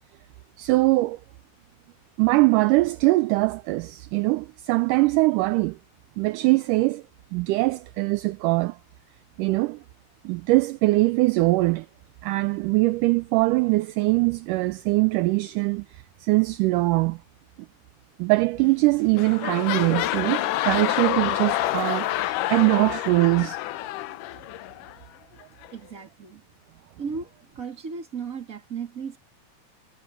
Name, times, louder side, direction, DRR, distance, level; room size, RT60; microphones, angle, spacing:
voice 1, 0.6-1.2 2.2-5.8 6.2-7.0 7.3-8.8 9.4-9.8 10.2-11.9 12.2-15.9 16.2-17.2 18.2-23.6, right 22 dB, 80° right, 1.9 m, -22 dB
sound 1, 18.6-18.9 19.1-25.0 25.6-25.7, left 15 dB, 75° left, 2.1 m, -28 dB
voice 2, 25.7-26.4 27.0-29.2, right 5 dB, 25° right, 2.8 m, -35 dB
omnidirectional pair, 4.1 m